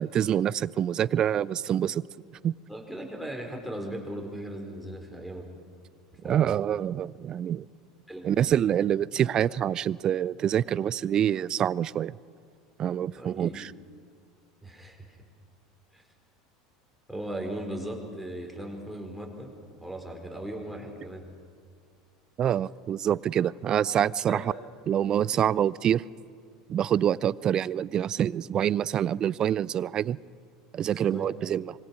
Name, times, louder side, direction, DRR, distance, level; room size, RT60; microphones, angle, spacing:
voice 1, 0.0-2.1 2.4-2.6 6.2-7.6 8.2-12.1 12.8-13.7 22.4-24.4 24.9-26.0 26.7-30.2 30.7-31.7, right 10 dB, 35° right, 23 dB, 0.5 m, -26 dB
voice 2, 2.7-5.5 6.2-6.5 8.1-8.6 13.1-13.5 14.6-15.2 15.9-16.0 17.1-19.5 19.8-21.3 24.3-24.4 30.9-31.4, right 1 dB, ahead, 1 dB, 4.8 m, -38 dB
26.0 x 22.5 x 6.0 m, 2.1 s
figure-of-eight pair, 75°, 2 cm